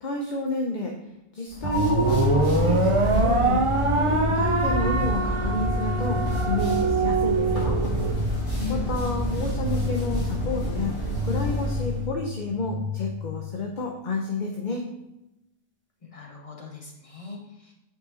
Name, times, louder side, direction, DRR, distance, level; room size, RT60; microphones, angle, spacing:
voice 1, 0.0-0.9 1.3-3.6 4.0-6.2 6.5-7.8 8.7-14.8, left 3 dB, 45° left, 1 dB, 0.9 m, -30 dB
sound 1, 1.5-12.0, right 1 dB, 70° left, 2.7 m, -29 dB
sound 2, 1.6-8.1, right 4 dB, 35° right, 0.6 m, -24 dB
sound 3, 1.7-13.6, left 3 dB, 10° right, 0.9 m, -31 dB
voice 2, 8.6-8.9 16.0-17.7, left 4 dB, 30° left, 0 dB, 1.5 m, -37 dB
8.7 x 5.6 x 4.0 m, 0.91 s
omnidirectional pair, 1.2 m